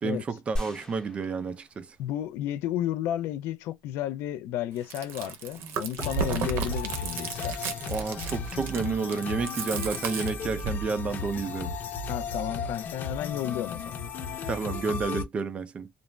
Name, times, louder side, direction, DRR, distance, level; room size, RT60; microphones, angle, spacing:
voice 1, 0.0-2.0 7.9-11.7 14.5-15.9, right 4 dB, 30° right, 0.5 m, -30 dB
sound 1, 0.6-2.3 2.8-2.9, equal, 15° left, 0.8 m, -37 dB
voice 2, 2.0-7.8 12.1-14.0, left 12 dB, 70° left, 0.4 m, -32 dB
Chewing mastication, 4.8-10.8, right 6 dB, 60° right, 0.8 m, -34 dB
sound 2, 6.0-15.2, left 5 dB, 50° left, 0.9 m, -35 dB
2.4 x 2.1 x 3.1 m
cardioid pair, 125°, 4 cm